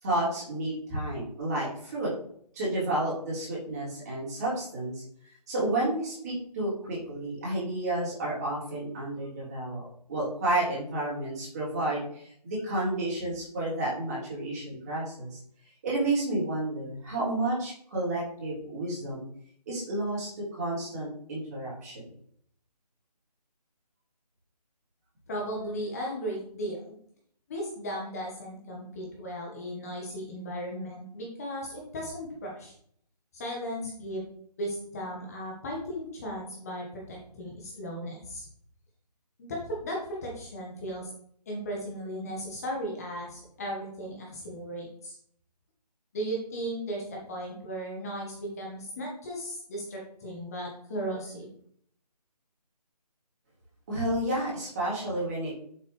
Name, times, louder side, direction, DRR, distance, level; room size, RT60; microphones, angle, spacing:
voice 1, 0.0-2.1 2.5-5.0 5.5-15.4 15.8-19.2 19.6-22.0 53.9-55.5, right 1 dB, 25° right, -6 dB, 3.4 m, -31 dB
voice 2, 25.3-26.8 27.5-32.7 33.3-34.2 34.6-38.5 39.4-41.1 41.4-45.2 46.1-51.5, equal, 25° left, -1 dB, 1.6 m, -36 dB
7.2 x 6.2 x 3.3 m, 0.64 s
figure-of-eight pair, 155°, 21 cm